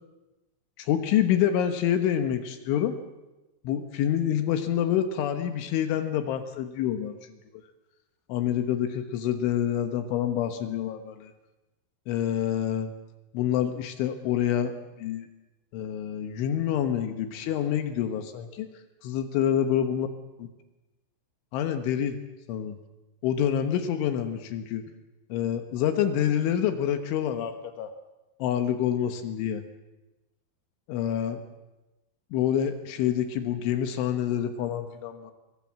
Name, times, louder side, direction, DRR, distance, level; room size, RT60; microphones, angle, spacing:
voice 1, 0.8-3.0 3.7-7.2 8.3-11.3 12.1-12.9 13.3-15.3 15.7-18.7 19.0-20.1 21.5-22.2 22.5-22.8 23.2-24.8 25.3-27.9 28.4-29.6 30.9-31.4 32.3-35.3, left 10 dB, 80° left, 7 dB, 3.7 m, -27 dB
23.5 x 23.0 x 7.5 m, 1.0 s
omnidirectional pair, 5.5 m